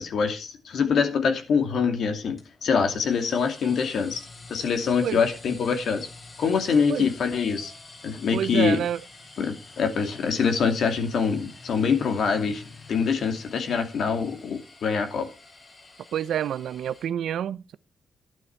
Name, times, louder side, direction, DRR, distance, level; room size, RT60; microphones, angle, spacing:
voice 1, 0.0-4.2 4.5-6.1 6.4-7.7 8.0-8.8 9.4-12.6 12.9-15.3, left 6 dB, 65° left, 2.4 m, -24 dB
sound 1, 2.4-17.1, left 3 dB, 40° left, 5.8 m, -47 dB
voice 2, 8.3-9.0 16.1-17.7, right 10 dB, 75° right, 0.6 m, -28 dB
11.5 x 10.5 x 4.6 m
cardioid pair, 75°, 0 cm